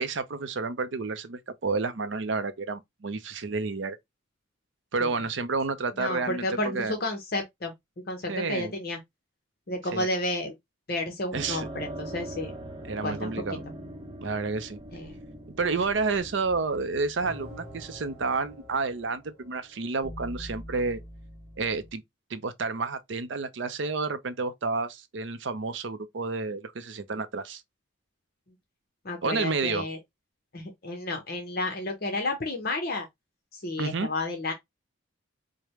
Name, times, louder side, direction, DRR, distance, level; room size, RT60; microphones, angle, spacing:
voice 1, 0.0-4.0 4.9-7.0 8.3-8.7 9.9-10.1 11.3-11.7 12.8-13.6 14.2-14.8 15.6-21.0 21.6-22.0 22.3-27.6 29.2-29.9 33.8-34.1, right 4 dB, 65° right, 0.6 m, -30 dB
voice 2, 6.0-7.7 8.1-9.0 9.7-10.5 10.9-12.5 13.0-13.3 14.9-15.2 29.0-30.0 30.5-33.1 33.5-34.5, left 2 dB, 50° left, 0.8 m, -31 dB
sound 1, 11.3-19.7, right 1 dB, 20° right, 0.8 m, -43 dB
sound 2, 16.9-21.9, equal, 30° left, 2.1 m, -45 dB
4.9 x 2.1 x 3.0 m
head